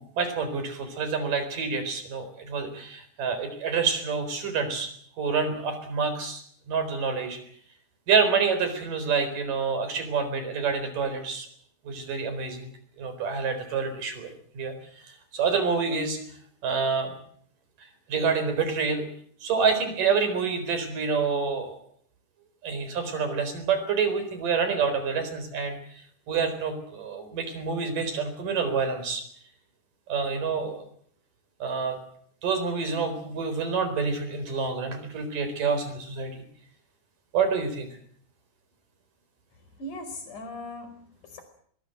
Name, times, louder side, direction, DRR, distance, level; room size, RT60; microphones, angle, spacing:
voice 1, 0.0-4.9 5.2-6.4 6.7-7.4 8.1-11.5 11.9-12.7 13.0-16.2 16.6-17.1 17.8-19.1 19.4-21.8 22.6-29.2 30.1-30.8 31.6-32.0 32.4-36.4 37.3-37.9, right 5 dB, 90° right, 10 dB, 5.8 m, -27 dB
voice 2, 39.5-41.4, left 1 dB, 70° left, 7 dB, 6.4 m, -40 dB
22.0 x 21.0 x 8.0 m, 0.62 s
omnidirectional pair, 3.7 m